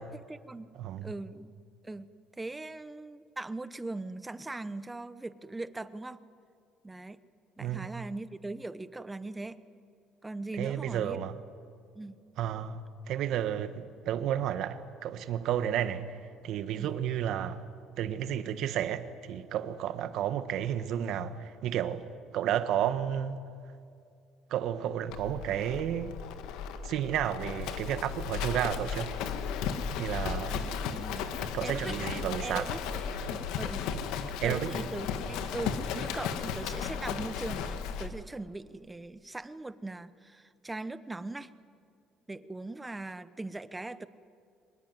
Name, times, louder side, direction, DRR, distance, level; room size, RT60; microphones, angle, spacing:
voice 1, 0.1-0.7 1.0-1.5 1.8-2.1 2.4-6.2 6.8-7.2 7.6-9.6 10.2-11.3 11.9-12.2 16.8-16.9 30.5-31.3 31.6-33.8 34.1-41.5 42.3-44.1, right 2 dB, 10° right, 0.9 m, -40 dB
voice 2, 0.8-1.1 7.6-7.9 10.6-11.3 12.4-16.0 16.4-17.6 18.0-22.0 22.3-23.4 24.5-26.2 26.8-29.1 30.0-30.6 31.5-32.7 34.4-34.7, right 10 dB, 65° right, 1.5 m, -32 dB
Livestock farm animals working animals, 25.1-38.1, left 7 dB, 85° left, 1.7 m, -35 dB
24.0 x 20.0 x 9.6 m
cardioid pair, 120°, 0 cm